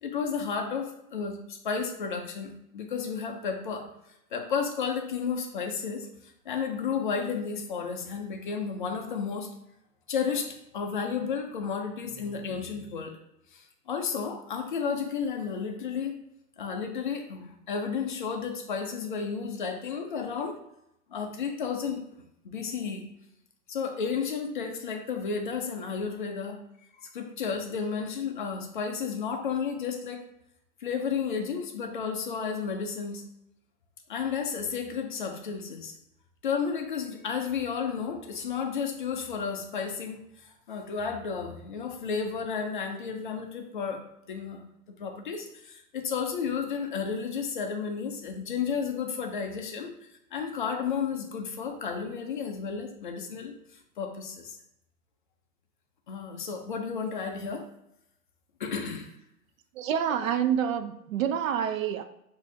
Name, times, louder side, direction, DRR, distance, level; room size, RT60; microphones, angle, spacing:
voice 1, 0.0-3.9 4.3-6.1 6.5-9.5 10.1-13.2 13.5-16.2 16.6-20.6 21.1-22.0 22.4-23.1 23.7-26.6 27.0-30.2 30.8-33.2 34.1-35.9 36.4-44.6 45.0-50.0 50.3-53.5 54.0-54.6 56.1-57.7 58.6-59.1 60.1-60.3, left 6 dB, 35° left, 4 dB, 0.4 m, -32 dB
voice 2, 59.8-62.0, right 9 dB, 55° right, 9 dB, 0.5 m, -27 dB
6.2 x 2.7 x 2.7 m, 0.81 s
hypercardioid pair, 145°, 48 cm